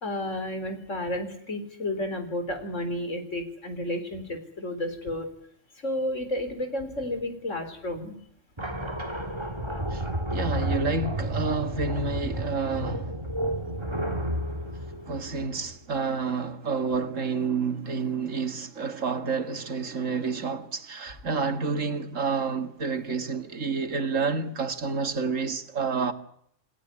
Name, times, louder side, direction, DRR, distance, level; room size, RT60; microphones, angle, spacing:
voice 1, 0.0-5.3 5.8-8.2, left 1 dB, 75° left, 4.4 m, -32 dB
sound 1, 8.6-16.0, right 1 dB, 20° right, 2.8 m, -31 dB
voice 2, 9.9-13.1 15.1-26.1, right 4 dB, 85° right, 2.3 m, -29 dB
28.5 x 18.0 x 9.8 m
omnidirectional pair, 1.3 m